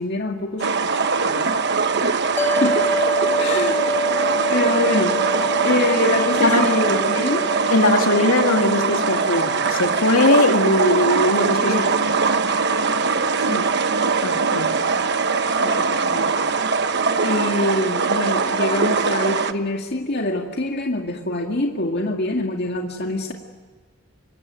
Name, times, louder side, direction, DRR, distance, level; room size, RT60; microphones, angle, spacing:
voice 1, 0.0-1.5 2.0-2.2 2.6-2.8 3.4-4.1 4.5-5.2 5.6-7.5 11.6-11.9 13.5-13.7 15.6-16.3 17.2-23.3, left 2 dB, 50° left, 1 dB, 2.1 m, -25 dB
sound 1, 0.6-19.5, right 4 dB, 50° right, 1.1 m, -21 dB
sound 2, 2.4-14.9, right 1 dB, 10° left, 1.0 m, -28 dB
voice 2, 7.7-11.8 12.0-12.1 14.2-14.8, left 2 dB, 75° left, 4 dB, 2.9 m, -20 dB
26.0 x 24.5 x 9.4 m, 1.4 s
head